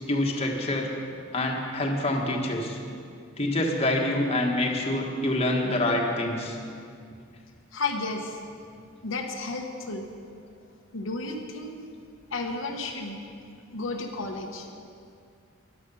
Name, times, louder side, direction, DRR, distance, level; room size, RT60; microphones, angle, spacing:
voice 1, 0.1-0.9 1.3-2.8 3.4-6.6, left 1 dB, 30° left, 0 dB, 1.5 m, -26 dB
voice 2, 7.7-8.4 9.0-10.1 10.9-11.7 12.3-13.2 13.7-14.7, left 3 dB, 75° left, 2 dB, 1.2 m, -32 dB
14.0 x 11.0 x 5.5 m, 2.4 s
head